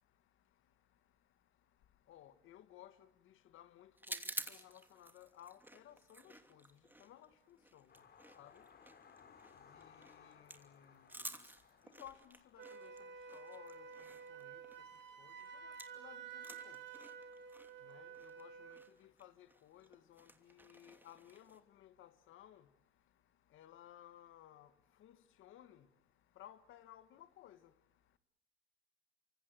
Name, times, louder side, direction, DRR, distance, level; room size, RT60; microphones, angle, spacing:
voice 1, 2.1-4.2 4.5-7.9 8.4-8.6 9.7-11.3 12.0-12.9 13.3-13.9 14.3-14.6 15.2-15.3 15.6-16.8 17.8-22.6 23.5-24.7 25.0-25.9 26.4-27.6, left 11 dB, 85° left, 1.9 m, -59 dB
sound 1, 4.0-16.1 16.3-21.6, right 1 dB, 10° right, 2.8 m, -52 dB
sound 2, 7.9-18.9 20.0-20.1 20.4-20.5, left 6 dB, 55° left, 3.7 m, -65 dB
Wind instrument woodwind instrument, 12.6-18.9, right 6 dB, 65° right, 3.1 m, -51 dB
27.0 x 25.5 x 8.0 m
cardioid pair, 90°, 20 cm